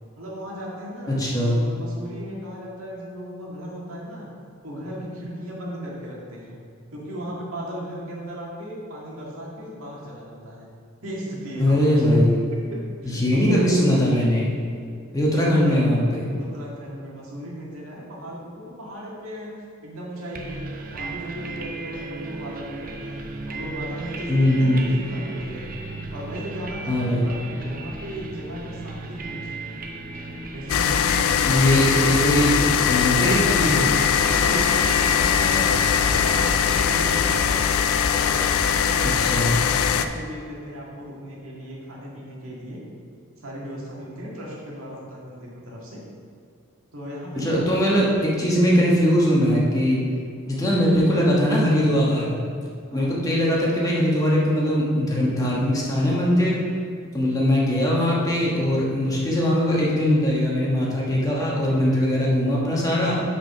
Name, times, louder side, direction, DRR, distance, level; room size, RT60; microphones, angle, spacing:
voice 1, 0.2-4.3 4.6-6.6 6.9-10.7 11.0-12.0 12.5-13.8 15.1-15.9 16.4-20.6 20.9-25.6 26.1-29.5 30.5-32.3 34.4-35.7 36.0-37.6 38.1-38.5 38.8-42.8 43.4-46.0 46.9-48.0 50.4-50.7 52.9-53.1, equal, 80° right, -4 dB, 1.9 m, -36 dB
voice 2, 1.1-1.6 11.6-12.4 13.1-14.5 15.1-16.3 24.3-24.8 26.9-27.3 31.4-32.5 32.8-33.9 39.2-39.5 47.4-50.0 50.5-52.4 52.9-56.6 57.1-63.2, equal, 15° left, -5 dB, 1.3 m, -20 dB
sound 1, 20.3-39.0, right 3 dB, 40° right, 0.7 m, -35 dB
sound 2, 30.7-40.1, left 7 dB, 85° left, 0.4 m, -21 dB
6.2 x 5.0 x 5.9 m, 2.4 s
head